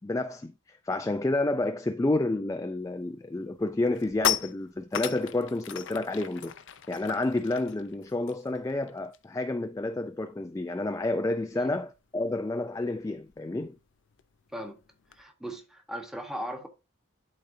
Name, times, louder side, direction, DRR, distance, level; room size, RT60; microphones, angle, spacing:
voice 1, 0.0-6.5 6.9-13.8, left 2 dB, 15° left, 0.3 m, -30 dB
sound 1, 2.9-3.1 3.5-9.4 9.7-9.9 10.2-15.2, left 9 dB, 60° left, 0.6 m, -37 dB
voice 2, 15.1-16.7, equal, 5° right, 1.1 m, -38 dB
12.0 x 4.1 x 2.6 m
head